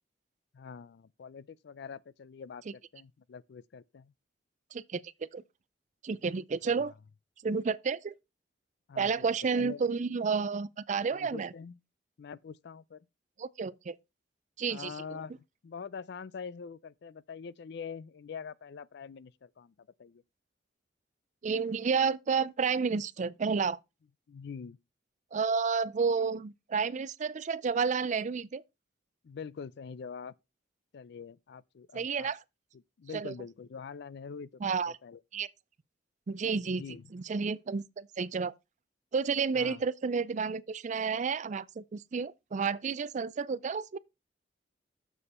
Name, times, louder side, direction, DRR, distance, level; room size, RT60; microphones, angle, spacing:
voice 1, 0.5-4.1 6.8-6.9 8.9-9.3 9.5-9.8 11.1-11.8 12.2-13.0 14.7-20.2 24.3-24.8 29.2-30.3 30.9-32.3 32.7-35.2 36.7-37.1 39.5-39.8, left 6 dB, 65° left, 0.4 m, -44 dB
voice 2, 4.7-5.4 6.0-6.9 7.4-8.1 9.0-11.5 13.4-13.9 14.6-14.9 21.4-23.8 25.3-28.6 31.9-32.4 33.1-33.3 34.6-34.9 35.3-35.5 36.3-36.8 37.1-38.5 39.1-44.0, right 5 dB, 40° right, 0.4 m, -31 dB
7.0 x 6.6 x 4.2 m
head